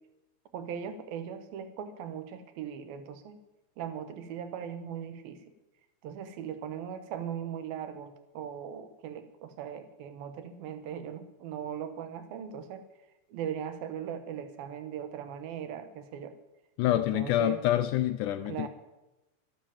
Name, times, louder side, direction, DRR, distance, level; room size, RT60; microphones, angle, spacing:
voice 1, 0.5-3.4 3.8-5.4 6.0-12.9 13.3-16.3 16.9-17.6 18.5-18.7, right 8 dB, 75° right, 10 dB, 3.0 m, -39 dB
voice 2, 16.8-18.7, left 13 dB, 85° left, 10 dB, 1.8 m, -27 dB
13.0 x 13.0 x 7.1 m, 0.99 s
omnidirectional pair, 4.3 m